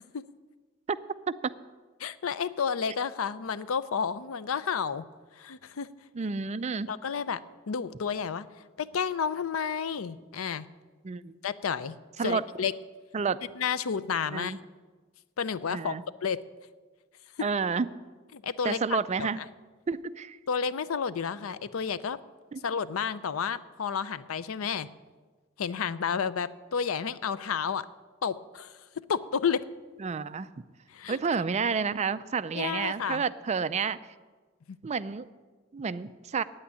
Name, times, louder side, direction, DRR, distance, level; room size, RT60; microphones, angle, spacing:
voice 1, 2.0-5.1 5.4-5.9 6.9-7.4 7.7-8.5 8.8-10.6 11.4-12.0 12.2-12.7 13.6-14.5 15.4-15.9 16.2-16.4 18.3-18.8 19.2-19.4 20.5-22.2 22.6-24.9 25.6-27.9 28.2-28.7 29.1-29.6 30.9-31.2 32.5-33.2 34.7-34.8, left 6 dB, 90° left, 16 dB, 0.5 m, -31 dB
voice 2, 6.1-6.9 11.0-11.4 12.2-12.4 13.1-13.4 14.3-14.6 15.7-16.0 17.4-17.9 18.6-19.4 19.9-20.4 22.5-22.6 30.0-30.6 31.1-34.0 34.8-35.3 35.7-36.4, right 5 dB, 35° right, 14 dB, 0.4 m, -30 dB
9.1 x 8.7 x 9.6 m, 1.3 s
head